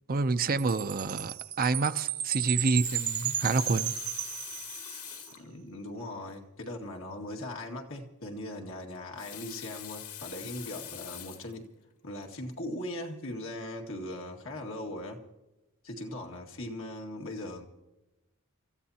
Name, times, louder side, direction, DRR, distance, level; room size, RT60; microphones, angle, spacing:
voice 1, 0.1-3.9, right 3 dB, 40° right, 0.6 m, -28 dB
Chime, 0.6-5.1, right 12 dB, 70° right, 1.1 m, -34 dB
Water tap faucet, 2.6-5.5 6.3-6.4 6.6-6.7 8.9-11.5 12.2-12.4, left 10 dB, 90° left, 2.1 m, -44 dB
voice 2, 5.4-11.7 12.0-15.2 15.8-17.7, left 1 dB, 65° left, 2.0 m, -39 dB
29.5 x 14.0 x 2.8 m
head